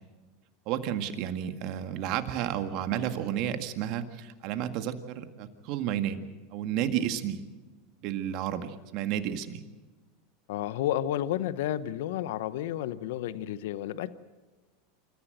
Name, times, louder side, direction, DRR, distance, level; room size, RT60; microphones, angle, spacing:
voice 1, 0.7-7.4 8.0-9.6, right 10 dB, 55° right, 8 dB, 1.9 m, -32 dB
voice 2, 10.5-14.1, left 12 dB, 75° left, 15 dB, 0.8 m, -31 dB
27.5 x 14.5 x 7.8 m, 1.2 s
hypercardioid pair, 105°, 0 cm